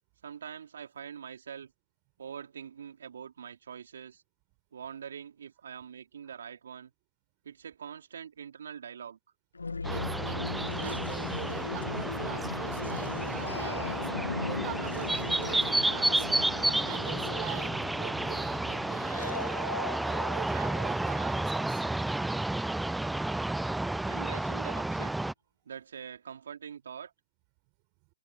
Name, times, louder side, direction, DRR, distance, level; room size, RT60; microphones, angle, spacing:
voice 1, 0.2-1.7 2.2-4.2 4.7-6.9 7.4-9.2 24.1-25.1 25.7-27.1, right 7 dB, 65° right, 3.7 m, -44 dB
sound 1, 9.5-21.4, left 3 dB, 85° left, 1.4 m, -38 dB
sound 2, 9.8-25.3, right 2 dB, 5° right, 0.4 m, -31 dB
voice 2, 9.9-17.7 18.0-21.8, right 36 dB, 30° right, 5.8 m, -44 dB
hypercardioid pair, 135°, 0 cm